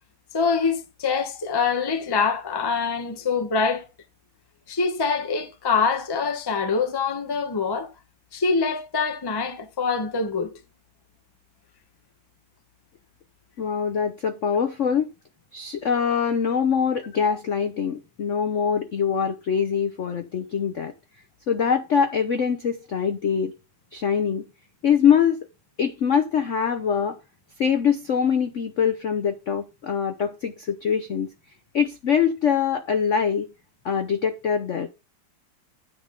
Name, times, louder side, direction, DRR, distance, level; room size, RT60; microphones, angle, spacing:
voice 1, 0.3-3.8 4.7-7.9 8.3-10.5, left 5 dB, 30° left, 0.4 m, -24 dB
voice 2, 13.6-15.1 15.5-20.9 21.5-23.5 23.9-24.4 24.8-25.4 25.8-27.2 27.6-31.3 31.7-33.5 33.8-34.9, left 7 dB, 75° left, 0.6 m, -23 dB
9.7 x 3.9 x 6.9 m
omnidirectional pair, 2.4 m